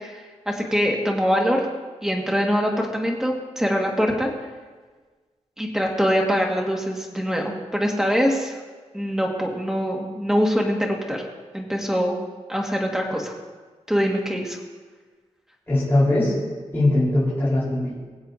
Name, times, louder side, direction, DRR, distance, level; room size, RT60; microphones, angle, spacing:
voice 1, 0.0-1.7 2.0-4.3 5.6-8.6 8.9-11.2 11.5-12.2 12.5-13.3 13.9-14.6, equal, 5° right, 0 dB, 1.7 m, -23 dB
voice 2, 15.7-16.3 16.7-17.9, left 1 dB, 20° left, -11 dB, 4.1 m, -20 dB
21.5 x 7.9 x 2.7 m, 1.4 s
wide cardioid pair, 110°, 12 cm